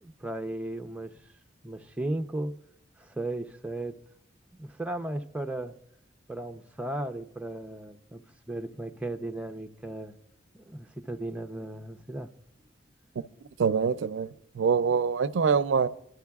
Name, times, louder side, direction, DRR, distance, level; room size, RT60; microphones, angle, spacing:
voice 1, 0.0-1.1 1.6-2.5 3.0-4.0 4.5-5.8 6.3-8.2 8.5-10.1 10.5-12.3, right 1 dB, 10° right, 0.5 m, -35 dB
voice 2, 13.6-14.3 14.6-15.9, right 6 dB, 75° right, 0.4 m, -24 dB
26.0 x 11.5 x 2.3 m
head